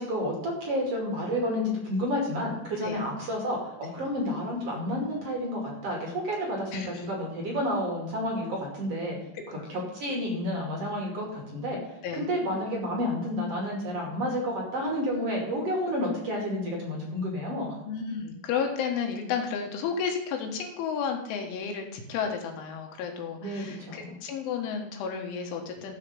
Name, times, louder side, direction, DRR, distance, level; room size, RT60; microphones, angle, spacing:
voice 1, 0.0-9.2 9.5-11.8 12.1-17.7 23.4-24.2, equal, 40° right, -1 dB, 2.6 m, -30 dB
voice 2, 17.9-25.9, left 6 dB, 75° left, 2 dB, 3.6 m, -32 dB
14.5 x 4.9 x 6.8 m, 0.89 s
omnidirectional pair, 5.9 m